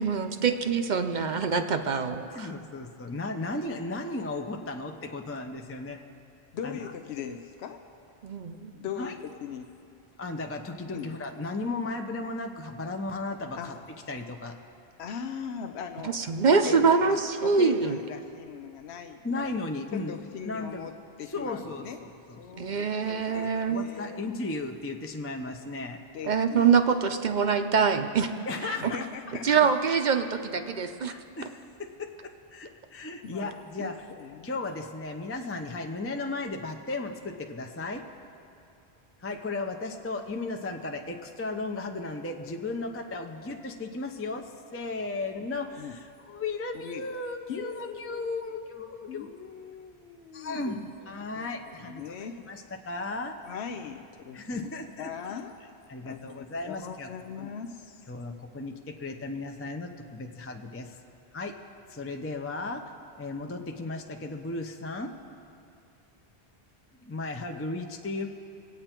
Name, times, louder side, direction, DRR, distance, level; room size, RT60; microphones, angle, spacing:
voice 1, 0.0-2.5 8.2-8.7 16.0-18.0 22.6-23.9 26.2-28.3 28.6-28.9 29.4-31.1, right 5 dB, 50° right, 7 dB, 0.7 m, -25 dB
voice 2, 2.3-6.0 6.6-6.9 9.0-9.1 10.2-13.8 14.1-14.6 19.2-20.2 20.4-20.9 21.3-22.4 22.7-26.0 28.5-29.0 31.1-34.0 34.4-38.0 39.2-49.3 50.3-53.3 54.3-55.1 55.9-57.1 57.4-57.5 58.1-61.0 61.3-61.5 61.9-65.1 67.0-68.3, left 3 dB, 15° left, 4 dB, 0.5 m, -35 dB
voice 3, 6.5-7.8 8.7-9.7 10.9-11.1 13.6-13.7 15.0-16.2 16.5-19.5 19.9-22.0 22.4-22.9 23.3-24.2 26.1-26.8 28.8-29.7 33.2-33.5 33.8-34.5 45.8-46.0 46.7-47.0 47.5-48.1 49.1-50.8 51.4-51.5 51.8-52.4 53.4-54.7 55.0-55.6 56.0-58.1, left 7 dB, 80° left, 5 dB, 0.9 m, -39 dB
23.0 x 9.0 x 4.5 m, 2.5 s
omnidirectional pair, 1.1 m